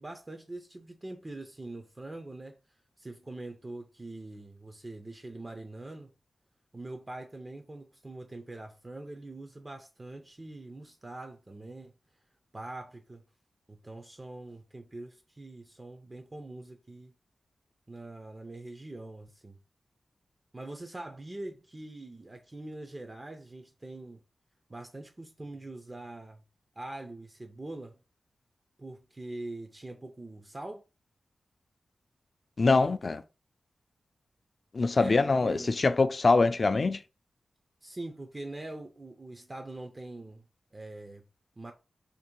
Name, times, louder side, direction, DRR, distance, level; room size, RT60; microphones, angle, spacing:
voice 1, 0.0-2.6 3.0-6.1 6.7-11.9 12.5-13.2 13.7-17.1 17.9-19.6 20.5-24.2 24.7-26.4 26.8-28.0 28.8-30.8 34.9-35.7 37.8-40.4 40.7-41.2 41.6-41.7, right 2 dB, 25° right, 0.4 m, -43 dB
voice 2, 32.6-33.2 34.7-37.0, left 3 dB, 40° left, 0.3 m, -24 dB
2.8 x 2.6 x 4.4 m
wide cardioid pair, 135°, 0 cm